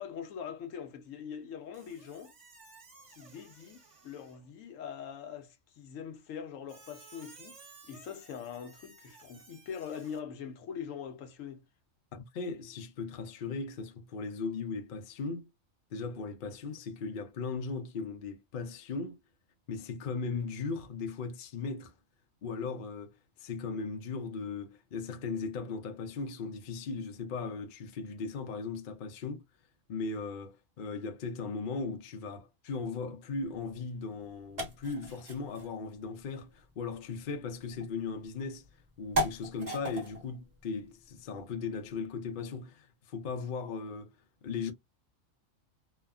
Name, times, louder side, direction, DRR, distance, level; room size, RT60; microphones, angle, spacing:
voice 1, 0.0-2.3 3.2-7.6 7.8-11.6, left 7 dB, 75° left, 1.0 m, -43 dB
Squeak, 1.7-4.5 6.7-10.2, right 4 dB, 60° right, 1.4 m, -56 dB
voice 2, 12.1-15.5 15.9-19.2 19.7-21.9 22.4-29.4 29.9-38.6 39.0-44.1 44.4-44.7, left 4 dB, 55° left, 0.6 m, -38 dB
sound 1, 33.3-42.0, equal, 35° right, 1.4 m, -40 dB
3.1 x 2.1 x 2.3 m
omnidirectional pair, 1.4 m